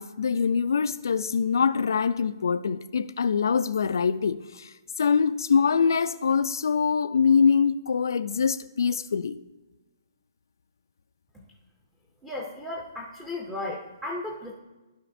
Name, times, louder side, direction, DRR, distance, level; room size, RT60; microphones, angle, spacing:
voice 1, 0.0-9.4, left 6 dB, 70° left, 0.4 m, -24 dB
voice 2, 12.2-14.5, left 2 dB, 5° right, 0.5 m, -35 dB
14.5 x 5.0 x 2.6 m
hypercardioid pair, 180°, 2 cm